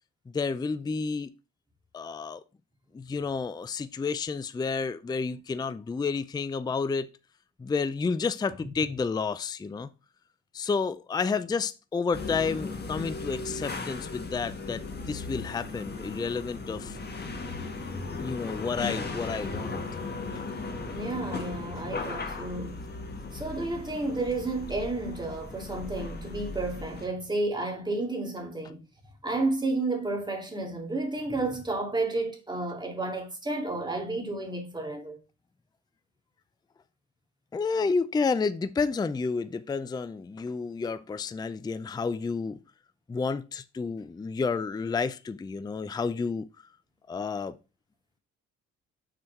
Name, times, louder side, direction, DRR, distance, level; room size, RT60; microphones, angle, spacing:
voice 1, 0.3-1.3 1.9-2.4 2.9-7.1 7.6-9.9 10.5-17.0 18.2-19.8 20.3-20.4 37.5-42.6 43.1-46.5 47.1-47.6, left 4 dB, 15° left, 0.4 m, -30 dB
sound 1, 12.1-27.1, left 3 dB, 35° left, 1.6 m, -37 dB
voice 2, 20.8-22.8 23.3-28.8 29.2-35.2, right 2 dB, 15° right, 2.3 m, -31 dB
6.3 x 4.4 x 4.5 m
cardioid pair, 90°, 30 cm